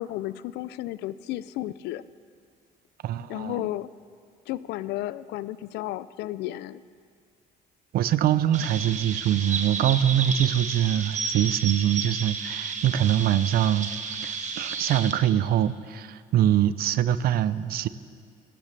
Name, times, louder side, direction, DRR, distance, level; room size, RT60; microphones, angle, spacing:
voice 1, 0.0-2.0 3.3-3.9 4.5-6.8, left 15 dB, 85° left, 17 dB, 0.4 m, -33 dB
voice 2, 3.0-3.6 7.9-13.9 14.2-17.9, right 11 dB, 65° right, 15 dB, 0.5 m, -24 dB
Chirp tweet, 8.5-15.1, right 5 dB, 45° right, 1.2 m, -32 dB
17.5 x 16.0 x 3.3 m, 2.1 s
cardioid pair, 110°, 17 cm